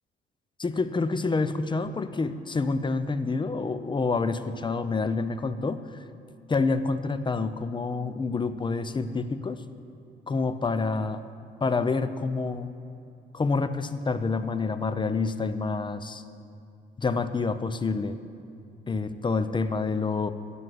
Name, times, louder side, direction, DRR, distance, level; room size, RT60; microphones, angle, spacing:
voice 1, 0.6-5.8 6.5-9.6 10.3-11.2 11.6-12.7 13.3-16.2 17.0-18.2 18.9-20.3, left 4 dB, 25° left, 12 dB, 0.6 m, -27 dB
9.6 x 7.8 x 7.7 m, 2.7 s
cardioid pair, 90°, 20 cm